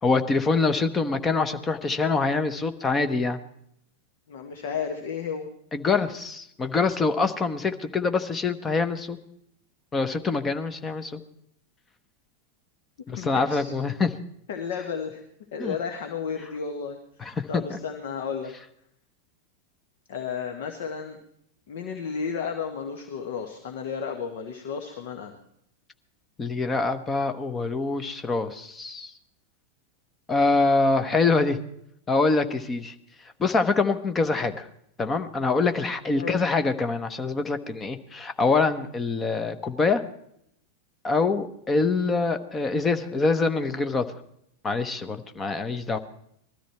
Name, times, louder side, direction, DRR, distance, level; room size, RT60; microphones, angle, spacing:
voice 1, 0.0-3.4 5.7-9.2 9.9-11.2 13.1-14.1 15.6-15.8 17.2-17.8 26.4-29.1 30.3-31.6 32.1-32.9 33.4-34.7 35.0-40.0 41.0-44.1 44.6-46.0, left 3 dB, 20° left, 9 dB, 1.0 m, -25 dB
voice 2, 4.3-5.5 13.2-13.7 14.5-15.2 15.5-18.5 20.1-21.2 21.7-25.3 36.2-36.4 45.9-46.0, left 6 dB, 55° left, 5 dB, 1.4 m, -33 dB
20.0 x 13.5 x 4.4 m, 0.73 s
figure-of-eight pair, 90°, 0 cm